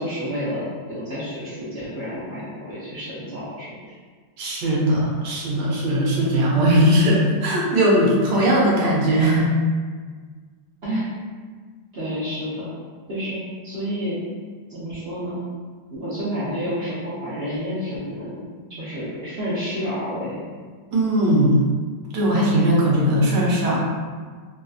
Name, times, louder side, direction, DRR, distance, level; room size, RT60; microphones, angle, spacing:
voice 1, 0.0-3.9 10.8-11.1 11.9-12.7 13.1-13.4 13.6-14.2 14.7-15.4 15.9-20.4, equal, 50° right, -10 dB, 0.7 m, -29 dB
voice 2, 4.4-9.5 20.9-21.6 22.1-23.8, equal, 75° right, -4 dB, 1.3 m, -19 dB
3.2 x 2.6 x 2.3 m, 1.5 s
omnidirectional pair, 1.9 m